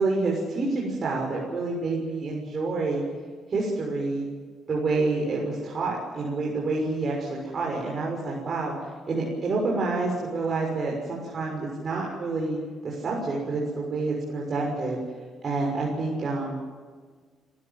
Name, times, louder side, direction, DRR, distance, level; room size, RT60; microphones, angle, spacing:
voice 1, 0.0-3.0 3.5-4.2 4.7-8.7 9.1-12.6 12.8-15.0 15.4-16.6, right 3 dB, 45° right, -2 dB, 6.4 m, -28 dB
30.0 x 15.5 x 7.6 m, 1.6 s
cardioid pair, 90°, 0 cm